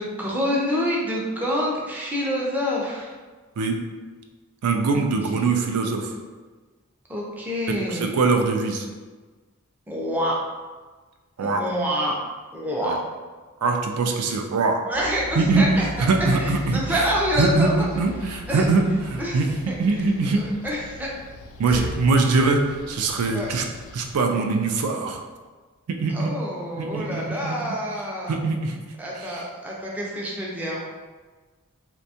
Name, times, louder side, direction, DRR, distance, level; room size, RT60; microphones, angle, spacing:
voice 1, 0.0-3.1 4.9-5.0 5.3-5.5 7.1-8.1 9.9-10.4 11.4-12.2 12.5-12.9 14.9-17.9 18.5-18.6 19.2-19.4 19.9-20.0 20.3-21.1 21.7-21.9 23.3-23.5 26.1-28.4 29.0-30.8, equal, 10° right, -4 dB, 0.4 m, -27 dB
voice 2, 4.6-6.1 7.9-8.9 11.4-11.6 12.8-13.0 13.6-14.8 15.4-15.6 16.0-17.0 17.4-18.8 19.1-19.5 19.8-20.4 21.6-23.6 23.9-25.2 25.9-26.3 26.8-27.7 28.3-28.8 29.2-29.4, right 3 dB, 80° right, 4 dB, 0.4 m, -22 dB
sound 1, 14.9-24.2, left 2 dB, 65° left, 0.3 m, -38 dB
2.6 x 2.2 x 2.7 m, 1.4 s
head